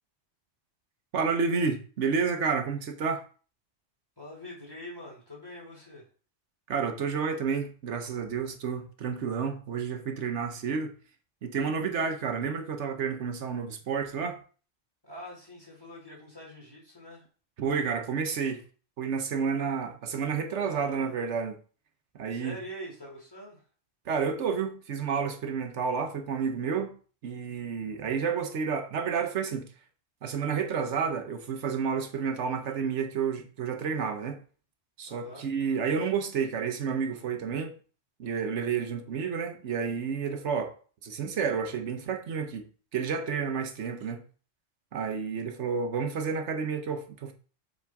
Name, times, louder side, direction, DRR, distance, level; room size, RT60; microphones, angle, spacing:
voice 1, 1.1-3.2 6.7-10.9 11.4-14.4 17.6-18.6 19.0-21.5 22.2-22.6 24.1-26.9 27.2-29.7 30.2-34.4 35.0-37.8 38.2-40.7 41.0-42.7 42.9-44.2 44.9-47.3, right 6 dB, 90° right, 1.2 m, -30 dB
voice 2, 4.2-6.0 15.0-17.2 20.6-21.3 22.3-23.6 35.1-35.5, equal, 20° left, 2.9 m, -44 dB
7.4 x 4.3 x 3.5 m
omnidirectional pair, 1.2 m